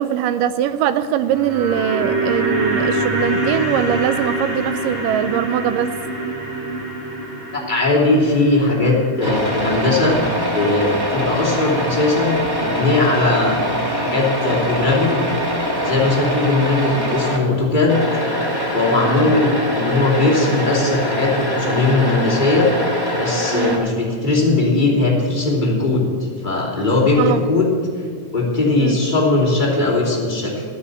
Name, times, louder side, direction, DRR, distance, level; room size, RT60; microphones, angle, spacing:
voice 1, 0.0-5.9 19.0-19.3 23.5-23.8 27.2-27.4 28.8-29.0, right 10 dB, 85° right, 12 dB, 1.9 m, -21 dB
sound 1, 1.0-11.3 11.6-11.7, right 2 dB, 30° right, 5.0 m, -25 dB
voice 2, 7.7-10.2 10.5-13.6 13.9-15.2 15.8-18.0 18.7-22.7 23.2-27.7 28.3-30.6, left 2 dB, 15° left, -4 dB, 2.6 m, -18 dB
sound 2, 9.2-17.4 17.9-23.8, equal, 10° right, 1.1 m, -23 dB
14.0 x 9.7 x 8.1 m, 2.2 s
omnidirectional pair, 4.3 m